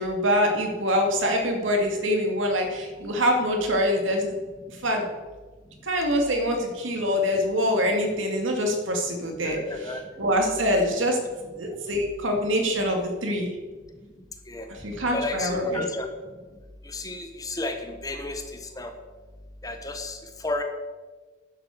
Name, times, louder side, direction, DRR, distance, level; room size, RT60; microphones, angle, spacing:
voice 1, 0.0-4.4 4.7-5.0 5.8-11.2 11.5-13.5 14.7-15.8, equal, 80° right, 2 dB, 2.5 m, -25 dB
voice 2, 9.4-10.1 14.5-14.7 15.1-16.1 16.8-18.9 19.6-20.6, left 2 dB, 20° left, 6 dB, 1.1 m, -32 dB
10.5 x 7.7 x 7.2 m, 1.3 s
head